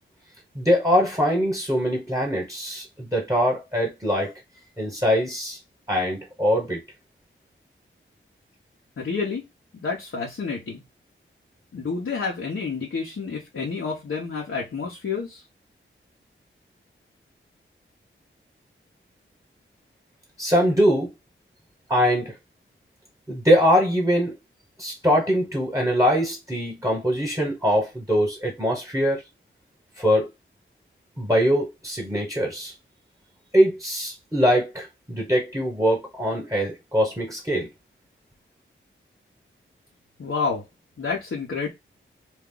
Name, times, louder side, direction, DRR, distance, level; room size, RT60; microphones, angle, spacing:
voice 1, 0.5-4.3 4.8-5.6 5.9-6.8 20.4-21.1 21.9-22.3 23.3-24.3 24.8-29.2 30.0-30.3 31.2-32.7 33.5-37.7, equal, 15° right, 1.3 m, -22 dB
voice 2, 9.0-9.4 9.8-10.8 11.7-15.4 40.2-40.7 41.0-41.7, left 5 dB, 80° left, 1.0 m, -29 dB
2.6 x 2.4 x 3.8 m
wide cardioid pair, 75°, 21 cm